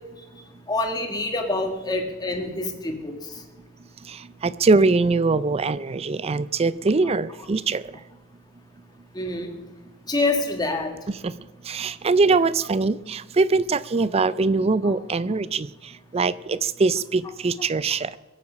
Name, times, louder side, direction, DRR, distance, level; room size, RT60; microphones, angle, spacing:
voice 1, 0.7-3.1 9.1-9.5 10.1-10.9 14.8-15.0, left 2 dB, 20° left, 3 dB, 1.9 m, -26 dB
voice 2, 4.1-7.8 11.2-11.3 11.7-18.1, right 3 dB, 30° right, 17 dB, 0.4 m, -22 dB
22.0 x 8.4 x 5.3 m, 1.2 s
head